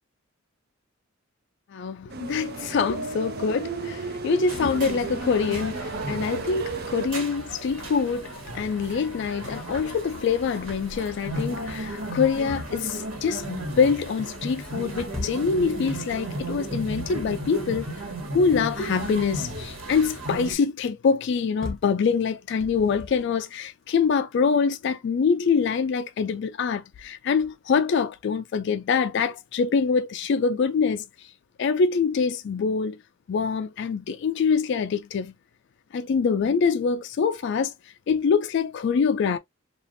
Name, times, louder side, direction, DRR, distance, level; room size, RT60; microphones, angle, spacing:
voice 1, 1.7-17.9 18.3-31.0 31.6-33.0 33.3-35.3 35.9-37.7 38.1-39.4, left 5 dB, 55° left, 0.3 m, -25 dB
sound 1, 2.1-7.1, right 4 dB, 45° right, 0.4 m, -34 dB
sound 2, 4.5-20.6, right 1 dB, 75° right, 1.4 m, -35 dB
sound 3, 15.1-15.5 16.4-17.5 21.6-22.0 22.6-23.3, left 2 dB, ahead, 1.0 m, -37 dB
3.3 x 2.4 x 2.5 m
head